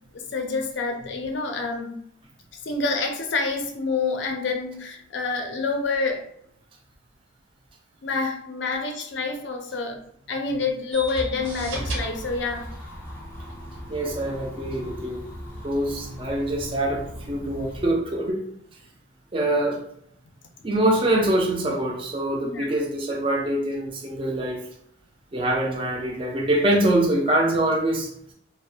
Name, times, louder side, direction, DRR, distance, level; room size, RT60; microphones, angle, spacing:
voice 1, 0.1-2.0 2.6-6.2 8.0-12.7 22.4-22.7, left 4 dB, 65° left, 3 dB, 0.4 m, -27 dB
sound 1, 10.9-18.3, right 1 dB, 85° right, 0.8 m, -37 dB
sound 2, 11.4-17.9, left 1 dB, 10° left, 0.6 m, -39 dB
voice 2, 13.9-15.2 15.6-18.4 19.3-19.8 20.6-24.6 25.3-28.3, right 1 dB, 25° right, -1 dB, 0.4 m, -24 dB
2.3 x 2.0 x 2.6 m, 0.70 s
head